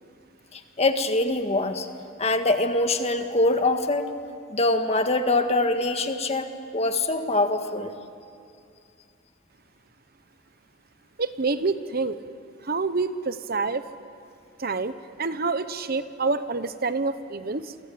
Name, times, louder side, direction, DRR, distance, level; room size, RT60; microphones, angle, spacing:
voice 1, 0.8-1.9 2.2-4.1 4.5-7.9, left 2 dB, 30° left, 7 dB, 1.7 m, -24 dB
voice 2, 11.2-12.2 12.6-13.8 14.6-14.9 15.2-17.7, right 3 dB, 50° right, 12 dB, 1.0 m, -27 dB
29.5 x 23.5 x 8.6 m, 2.4 s
head